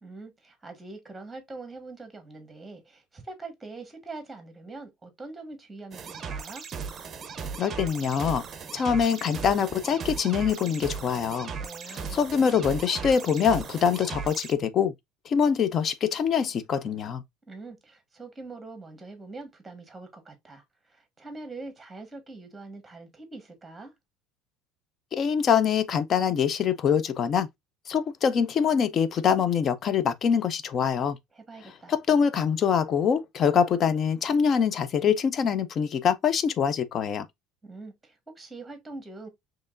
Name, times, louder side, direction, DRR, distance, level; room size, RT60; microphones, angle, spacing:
voice 1, 0.0-6.6 11.6-12.3 17.5-23.9 31.3-31.9 37.6-39.3, right 3 dB, 10° right, 1.2 m, -43 dB
sound 1, 5.9-14.5, right 5 dB, 30° right, 0.6 m, -37 dB
voice 2, 7.6-8.4 8.7-11.5 11.9-14.9 15.3-17.2 25.1-27.5 27.9-31.2 31.9-37.3, left 7 dB, 40° left, 0.4 m, -24 dB
4.4 x 3.0 x 2.4 m
cardioid pair, 125°, 0 cm